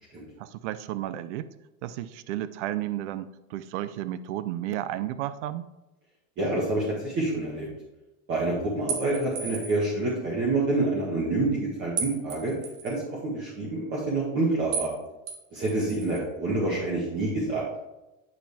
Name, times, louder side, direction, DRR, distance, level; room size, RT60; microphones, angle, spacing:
voice 1, 0.4-1.5 1.8-5.7, right 13 dB, 85° right, 14 dB, 0.6 m, -33 dB
voice 2, 6.4-7.7 8.3-12.5 12.8-14.9 15.5-17.6, right 2 dB, 35° right, -5 dB, 1.7 m, -27 dB
sound 1, 8.9-9.9 12.0-13.0 14.7-15.0 15.3-16.2, right 6 dB, 65° right, 1.6 m, -34 dB
9.4 x 5.1 x 3.5 m, 1.0 s
supercardioid pair, 150°, 35 cm